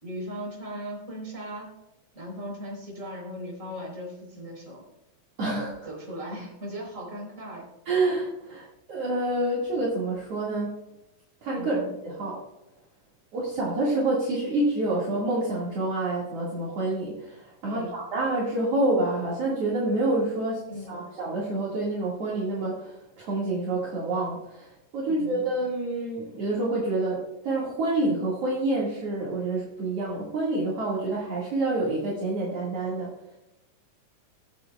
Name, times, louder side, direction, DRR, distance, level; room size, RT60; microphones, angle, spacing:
voice 1, 0.0-1.7 2.1-4.8 5.9-7.6 11.6-11.8 17.6-17.9 20.7-21.1 25.1-25.4, equal, 25° right, -2 dB, 4.2 m, -38 dB
voice 2, 5.4-5.9 7.9-10.8 11.4-12.4 13.3-20.6 20.9-33.1, right 2 dB, 55° right, -6 dB, 2.9 m, -28 dB
21.5 x 7.7 x 2.3 m, 0.92 s
omnidirectional pair, 3.5 m